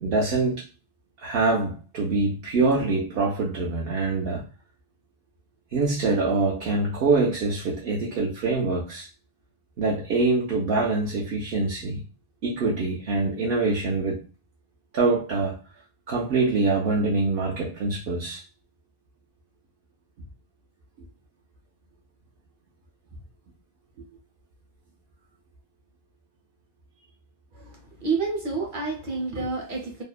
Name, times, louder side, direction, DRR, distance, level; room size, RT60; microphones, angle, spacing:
voice 1, 0.0-0.7 1.2-4.4 5.7-9.1 9.8-12.0 12.4-14.2 14.9-15.6 16.1-18.4, right 3 dB, 70° right, 0.8 m, -24 dB
voice 2, 27.5-30.0, right 4 dB, 55° right, 1.1 m, -29 dB
2.6 x 2.1 x 2.3 m
omnidirectional pair, 1.0 m